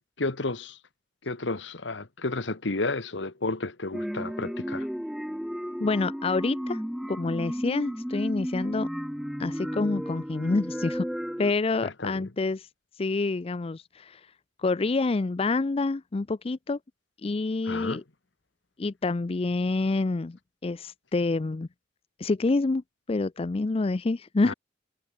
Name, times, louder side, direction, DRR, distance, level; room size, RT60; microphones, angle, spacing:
voice 1, 0.2-0.8 1.2-4.9 11.8-12.3 17.7-18.0 24.4-24.5, left 2 dB, 75° left, 1.6 m, -32 dB
sound 1, 3.9-11.5, equal, ahead, 1.3 m, -33 dB
voice 2, 5.8-6.8 7.1-8.9 9.4-11.1 11.4-12.7 13.0-14.3 14.6-16.8 17.2-18.0 18.8-21.7 22.2-24.5, left 3 dB, 30° left, 0.5 m, -27 dB
head